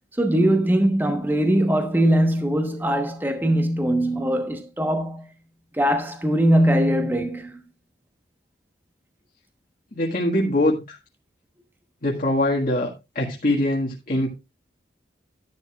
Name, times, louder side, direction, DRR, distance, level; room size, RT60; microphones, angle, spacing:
voice 1, 0.2-5.3 5.7-7.6, right 1 dB, 10° right, 1.1 m, -21 dB
voice 2, 9.9-11.0 12.0-12.9 13.2-14.3, left 1 dB, 50° left, 1.7 m, -22 dB
11.5 x 11.0 x 2.4 m
head